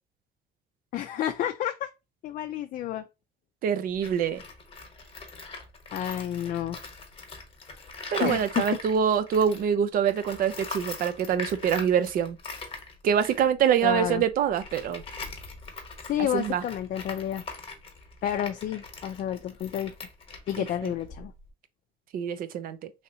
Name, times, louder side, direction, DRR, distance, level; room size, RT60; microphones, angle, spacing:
voice 1, 0.9-1.9 2.2-3.0 5.9-6.8 8.2-8.6 13.8-14.2 16.1-17.4 18.2-19.9 20.5-21.3, left 11 dB, 55° left, 0.4 m, -30 dB
voice 2, 3.6-4.4 8.1-12.4 13.0-15.0 16.3-16.6 20.6-20.9 22.1-22.9, right 8 dB, 60° right, 0.5 m, -25 dB
Tools, 3.9-9.7 10.0-21.5, left 4 dB, 35° left, 1.0 m, -41 dB
3.2 x 2.6 x 2.7 m
cardioid pair, 110°, 17 cm